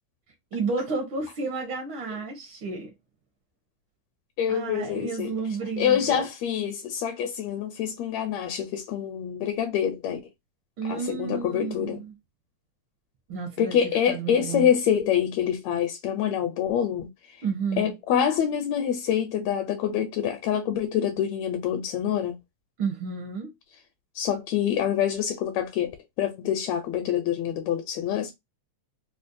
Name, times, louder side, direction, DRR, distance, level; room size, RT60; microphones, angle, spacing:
voice 1, 0.5-2.9 4.5-6.3 10.8-12.1 13.3-13.8 14.1-14.7 17.4-17.9 22.8-23.5, right 4 dB, 70° right, 1.2 m, -31 dB
voice 2, 4.4-10.2 10.9-12.0 13.6-17.4 17.8-22.4 24.2-28.3, left 9 dB, 80° left, 1.7 m, -26 dB
5.0 x 2.0 x 2.5 m
omnidirectional pair, 3.3 m